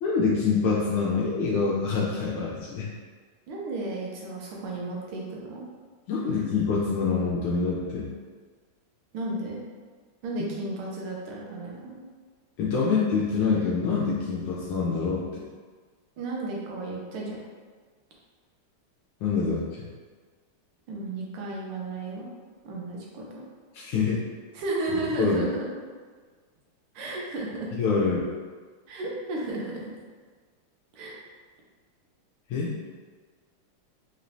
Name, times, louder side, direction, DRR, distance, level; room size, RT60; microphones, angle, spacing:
voice 1, 0.0-2.9 6.1-8.1 12.6-15.2 19.2-19.9 23.7-24.2 25.2-25.4 27.8-28.3 32.5-32.7, left 5 dB, 80° left, -5 dB, 1.4 m, -25 dB
voice 2, 3.5-5.6 9.1-9.6 10.2-12.0 16.2-17.4 20.9-22.3 22.6-23.4 24.5-25.7 27.0-27.7 28.9-29.9 30.9-31.2, right 2 dB, 85° right, -2 dB, 1.6 m, -33 dB
4.3 x 3.1 x 2.6 m, 1.5 s
omnidirectional pair, 2.4 m